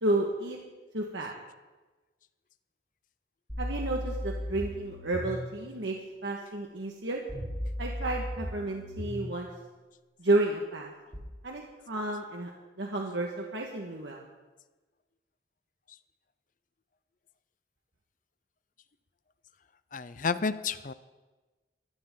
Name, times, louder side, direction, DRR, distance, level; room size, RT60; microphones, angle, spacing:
voice 1, 0.0-0.6 0.9-1.3 3.6-6.0 6.2-7.2 7.8-9.5 10.2-10.9 11.4-12.5 12.8-14.2, right 2 dB, 85° right, 0 dB, 1.7 m, -31 dB
sound 1, 3.5-5.5 7.3-9.3 11.1-11.2, left 1 dB, 20° left, 4.1 m, -36 dB
voice 2, 19.9-20.9, left 5 dB, 45° left, 14 dB, 0.6 m, -31 dB
22.5 x 16.0 x 3.9 m, 1.2 s
head